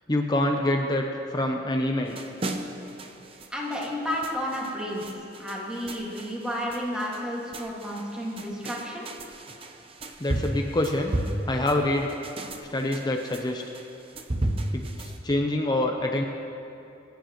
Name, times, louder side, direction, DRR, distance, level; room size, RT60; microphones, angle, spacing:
voice 1, 0.1-2.2 10.2-11.1 11.5-12.1 12.7-13.6 14.7-16.2, left 1 dB, 20° left, 2 dB, 0.6 m, -26 dB
sound 1, 2.1-15.2, right 1 dB, 30° right, 0.7 m, -34 dB
voice 2, 3.5-9.1, equal, 5° right, -4 dB, 2.0 m, -32 dB
26.0 x 9.4 x 3.1 m, 2.8 s
head